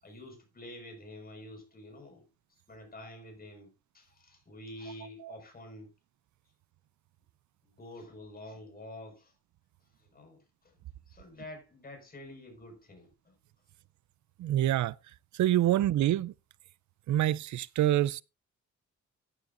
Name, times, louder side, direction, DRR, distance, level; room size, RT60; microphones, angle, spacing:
voice 1, 0.0-5.9 7.6-9.3 10.0-10.7 11.1-13.3, left 1 dB, 30° left, 5.3 m, -48 dB
voice 2, 14.4-14.9 15.3-16.3 17.1-18.2, right 13 dB, 75° right, 0.5 m, -26 dB
14.5 x 9.9 x 2.6 m
cardioid pair, 120°, 30 cm